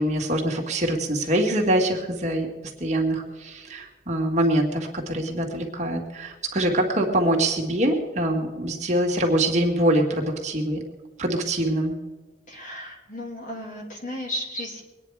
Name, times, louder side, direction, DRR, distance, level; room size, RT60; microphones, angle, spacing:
voice 1, 0.0-2.5 2.8-10.8 11.2-11.9, right 1 dB, 40° right, 0 dB, 1.9 m, -24 dB
voice 2, 12.5-14.8, left 1 dB, 45° left, 0 dB, 3.0 m, -34 dB
23.0 x 9.7 x 4.8 m, 1.2 s
head